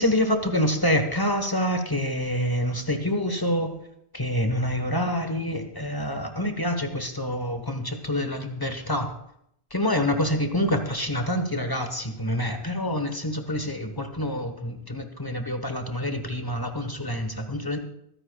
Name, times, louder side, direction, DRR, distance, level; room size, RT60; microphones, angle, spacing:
voice 1, 0.0-3.8 4.1-9.1 9.7-17.8, equal, 25° left, 6 dB, 1.0 m, -27 dB
23.5 x 9.8 x 2.3 m, 0.74 s
omnidirectional pair, 1.0 m